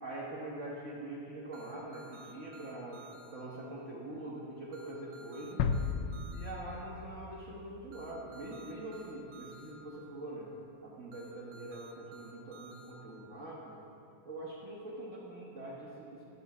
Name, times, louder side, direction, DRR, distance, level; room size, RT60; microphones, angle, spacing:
voice 1, 0.0-3.0 3.3-5.6 6.3-10.5 10.8-13.8 14.2-16.3, right 1 dB, 50° right, -5 dB, 1.5 m, -44 dB
sound 1, 1.5-3.3 4.7-6.5 7.9-9.7 11.1-12.9, right 3 dB, 65° right, 1.4 m, -54 dB
sound 2, 5.6-8.4, left 6 dB, 70° left, 0.8 m, -35 dB
13.0 x 5.4 x 6.8 m, 2.7 s
omnidirectional pair, 1.8 m